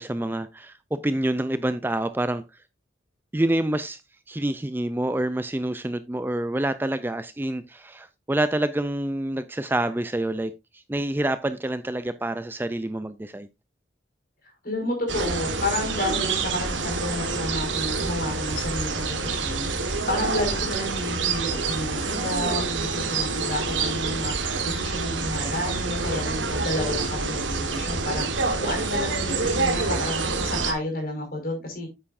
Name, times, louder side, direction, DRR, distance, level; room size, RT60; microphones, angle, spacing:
voice 1, 0.0-2.4 3.3-4.0 4.3-13.5, right 1 dB, 10° right, 0.4 m, -27 dB
voice 2, 14.6-19.7 20.1-24.3 24.6-28.3 28.6-31.9, left 1 dB, 50° left, 5.2 m, -30 dB
sound 1, 15.1-30.7, right 4 dB, 90° right, 1.6 m, -27 dB
9.3 x 8.7 x 2.6 m
head